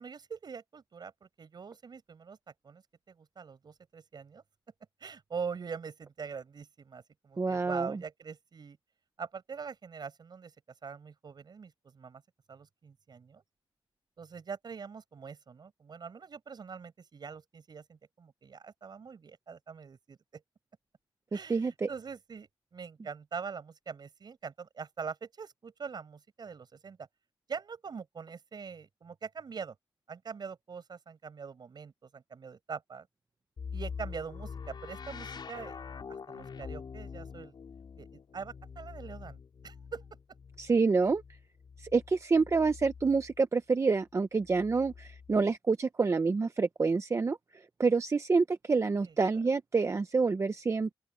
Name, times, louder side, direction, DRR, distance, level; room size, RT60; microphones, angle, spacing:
voice 1, 0.0-4.4 5.0-8.8 9.2-10.5 10.8-12.2 12.5-13.4 14.2-20.4 21.3-27.1 27.5-29.8 30.1-33.1 33.7-35.8 36.3-37.5 38.0-40.0 49.0-49.1, right 5 dB, 55° right, 7.3 m, -43 dB
voice 2, 7.4-8.0 21.5-21.9 40.6-41.2 41.8-50.9, right 4 dB, 35° right, 0.8 m, -27 dB
sound 1, 33.6-43.4 44.4-45.4, left 6 dB, 60° left, 5.3 m, -45 dB
open air
wide cardioid pair, 120°, 9 cm